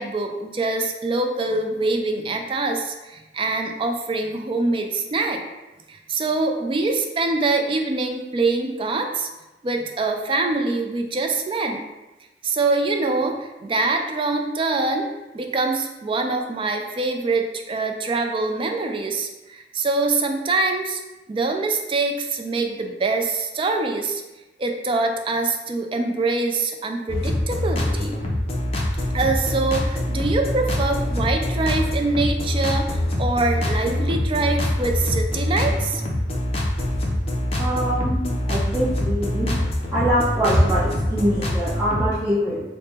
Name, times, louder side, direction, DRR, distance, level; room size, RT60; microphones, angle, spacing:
voice 1, 0.0-5.4 5.9-9.3 9.6-11.8 12.4-15.1 15.3-21.0 21.3-24.2 24.6-28.1 29.1-36.0, right 3 dB, 30° right, 4 dB, 0.3 m, -24 dB
sound 1, 27.1-42.1, left 1 dB, 35° left, 0.5 m, -24 dB
voice 2, 37.6-39.5 39.9-42.6, equal, 10° right, -13 dB, 0.7 m, -23 dB
3.3 x 2.1 x 4.2 m, 1.1 s
head